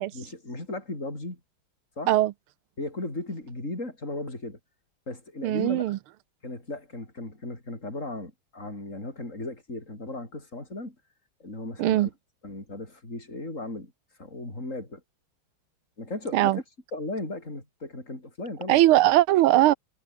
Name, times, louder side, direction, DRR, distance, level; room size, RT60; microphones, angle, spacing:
voice 1, 0.0-1.4 2.0-2.2 2.8-4.6 5.1-6.0 6.4-11.0 11.4-12.1 12.4-13.9 14.2-15.0 16.0-16.6 16.9-18.9, left 2 dB, 35° left, 7.3 m, -36 dB
voice 2, 5.4-6.0 11.8-12.1 16.3-16.6 18.7-19.7, right 15 dB, 85° right, 1.6 m, -20 dB
omnidirectional pair, 2.3 m